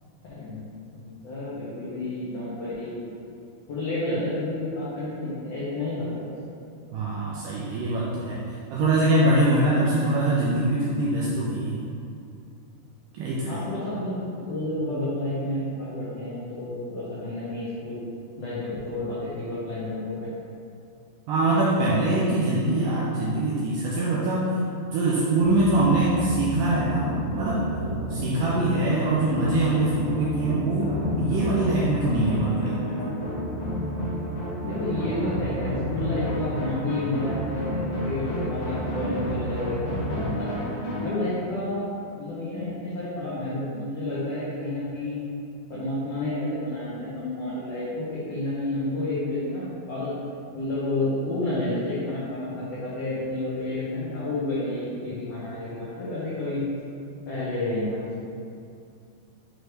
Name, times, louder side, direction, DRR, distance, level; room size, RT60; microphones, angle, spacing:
voice 1, 0.3-0.7 0.9-3.1 3.7-6.3 9.7-9.9 13.5-18.0 18.4-20.3 25.8-26.1 34.6-40.5 41.0-45.3 45.7-50.1 50.5-56.6 57.2-58.2, left 1 dB, 80° left, -9 dB, 1.4 m, -30 dB
voice 2, 6.9-8.4 8.7-11.8 13.1-13.6 21.3-24.5 24.9-27.7 28.1-33.0, right 2 dB, 85° right, -6 dB, 1.9 m, -23 dB
sound 1, 25.4-41.1, equal, 50° left, 2.2 m, -30 dB
6.5 x 3.1 x 4.8 m, 2.5 s
omnidirectional pair, 4.4 m